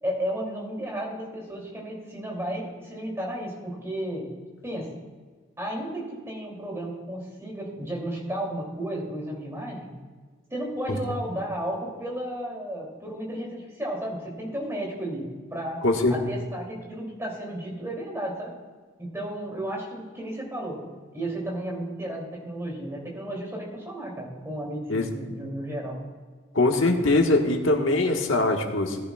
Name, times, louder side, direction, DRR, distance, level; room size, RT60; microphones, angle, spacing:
voice 1, 0.0-4.2 4.6-4.9 5.6-9.9 10.5-15.2 15.5-15.8 16.1-18.5 19.0-20.8 21.1-26.0, right 1 dB, 15° right, -2 dB, 2.7 m, -33 dB
voice 2, 15.8-16.1 24.9-25.1 26.5-29.0, left 2 dB, 80° left, 2 dB, 1.5 m, -22 dB
18.5 x 10.5 x 2.4 m, 1.4 s
head